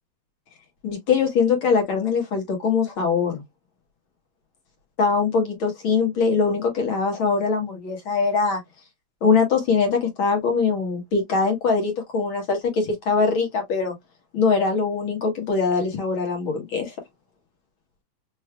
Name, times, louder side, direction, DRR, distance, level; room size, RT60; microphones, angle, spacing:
voice 1, 0.8-3.4 5.0-8.6 9.2-13.9 14.3-16.9, left 5 dB, 55° left, 1.7 m, -22 dB
4.7 x 3.2 x 2.2 m
omnidirectional pair, 3.3 m